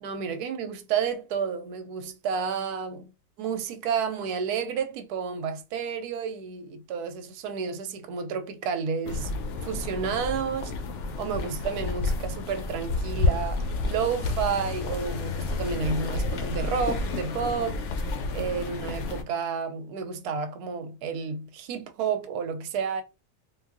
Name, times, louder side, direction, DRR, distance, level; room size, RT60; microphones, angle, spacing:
voice 1, 0.0-3.1 3.4-9.3 9.6-10.8 11.2-17.8 18.3-23.0, right 6 dB, 90° right, 1.1 m, -31 dB
sound 1, 9.1-19.2, left 2 dB, 65° left, 0.7 m, -30 dB
3.5 x 2.3 x 2.4 m
omnidirectional pair, 1.6 m